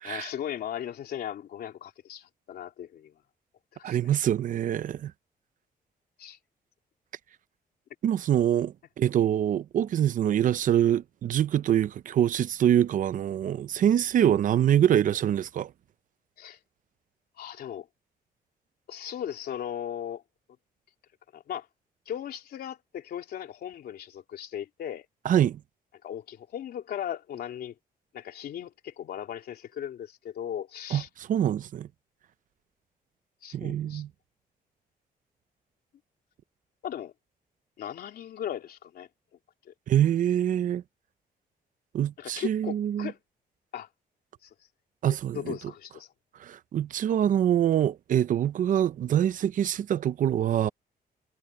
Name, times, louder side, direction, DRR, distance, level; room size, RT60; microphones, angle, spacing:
voice 1, 0.0-3.1 3.7-4.0 6.2-6.4 16.4-16.6 17.4-17.9 18.9-20.2 21.3-21.7 22.1-25.1 26.0-27.7 28.1-31.1 33.4-34.0 36.8-37.1 37.8-39.1 39.7-39.8 42.2-43.2 43.7-43.9 44.4-44.5 45.3-46.1, left 10 dB, 75° left, 3.3 m, -37 dB
voice 2, 3.8-5.1 8.0-15.7 25.2-25.6 30.9-31.0 31.3-31.9 33.5-34.1 39.9-40.8 41.9-43.1 45.0-45.5 46.4-50.7, right 10 dB, 55° right, 0.6 m, -25 dB
wide cardioid pair, 170°, 16 cm